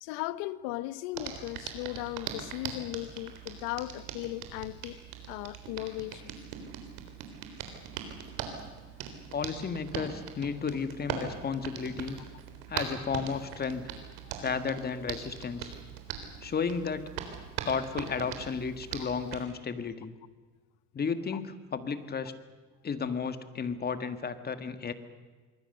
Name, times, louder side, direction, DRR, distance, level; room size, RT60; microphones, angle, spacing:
voice 1, 0.0-5.0 5.3-6.3 19.0-19.1 21.3-21.4, left 17 dB, 85° left, 1.0 m, -37 dB
Hands, 1.1-19.4, right 8 dB, 85° right, 3.8 m, -41 dB
voice 2, 9.3-12.2 12.7-13.9 14.4-15.7 16.4-17.1 17.7-20.1 20.9-22.3 22.8-24.9, left 5 dB, 25° left, 1.7 m, -33 dB
25.5 x 23.0 x 6.7 m
cardioid pair, 125°, 36 cm